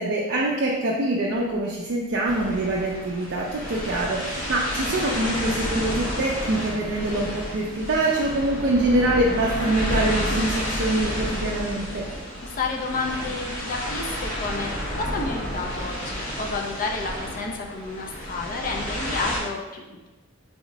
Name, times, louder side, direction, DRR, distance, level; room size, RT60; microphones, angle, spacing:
voice 1, 0.0-12.1, right 1 dB, 55° right, -3 dB, 0.4 m, -24 dB
sound 1, 1.4-15.5, right 1 dB, 60° left, 0.9 m, -37 dB
sound 2, 2.2-19.4, equal, 80° left, 1.0 m, -31 dB
voice 2, 12.4-14.7 14.9-20.1, left 3 dB, 40° left, 1 dB, 0.4 m, -30 dB
3.4 x 2.0 x 3.8 m, 1.1 s
head